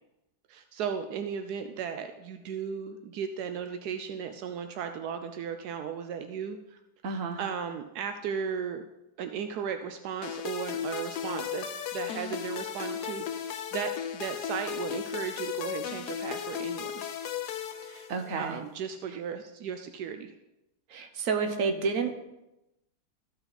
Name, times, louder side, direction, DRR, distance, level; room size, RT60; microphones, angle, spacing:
voice 1, 0.5-6.8 7.4-8.8 9.2-17.0 17.8-18.1 18.4-20.3, right 7 dB, 80° right, 7 dB, 1.2 m, -36 dB
voice 2, 7.0-7.4 18.1-18.6 20.9-22.1, right 5 dB, 60° right, 5 dB, 1.3 m, -29 dB
sound 1, 10.2-18.5, left 9 dB, 85° left, 1.3 m, -35 dB
13.5 x 5.7 x 4.1 m, 0.93 s
omnidirectional pair, 1.7 m